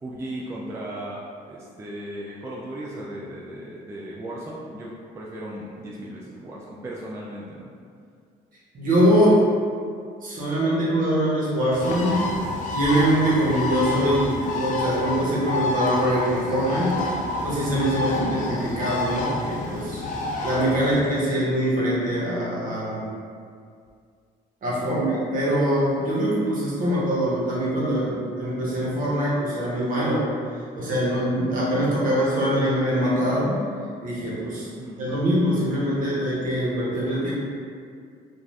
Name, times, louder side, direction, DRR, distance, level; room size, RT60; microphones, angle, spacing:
voice 1, 0.0-7.7 24.7-25.0 34.5-35.2, right 1 dB, 15° right, -5 dB, 0.3 m, -36 dB
voice 2, 8.7-9.5 10.2-12.3 12.7-17.0 17.4-20.0 20.4-23.1 24.6-30.3 30.8-33.6 34.0-34.6 35.0-37.3, equal, 55° right, -7 dB, 1.0 m, -23 dB
Bird, 11.7-21.0, left 2 dB, 50° left, 0.4 m, -29 dB
2.5 x 2.4 x 3.2 m, 2.2 s
cardioid pair, 110°, 17 cm